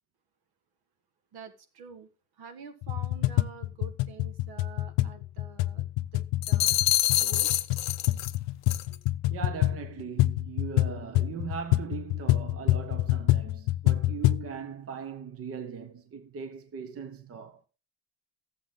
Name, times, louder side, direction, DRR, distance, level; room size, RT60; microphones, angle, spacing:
voice 1, 1.3-2.1 2.4-7.6, right 6 dB, 70° right, 1.8 m, -47 dB
sound 1, 2.8-14.5, left 16 dB, 90° left, 0.6 m, -27 dB
sound 2, 6.4-8.3 8.7-8.9, left 14 dB, 45° left, 0.5 m, -26 dB
voice 2, 9.3-17.6, right 6 dB, 35° right, 1.0 m, -39 dB
14.0 x 7.8 x 3.8 m
cardioid pair, 140°, 40 cm